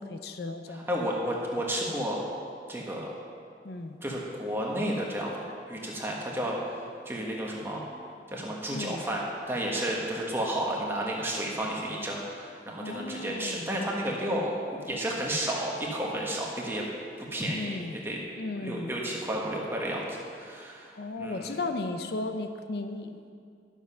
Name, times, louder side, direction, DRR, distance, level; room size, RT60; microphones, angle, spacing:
voice 1, 0.0-0.9 3.6-4.0 8.7-9.0 12.8-13.7 17.5-18.0 18.4-18.9 21.0-23.3, left 2 dB, 60° left, 7 dB, 0.6 m, -35 dB
voice 2, 0.7-2.2 2.7-3.1 4.0-5.4 5.7-7.8 8.3-16.8 17.2-18.2 18.5-20.9 21.2-21.5, right 1 dB, 15° right, -3 dB, 1.2 m, -32 dB
12.0 x 7.3 x 5.6 m, 2.3 s
head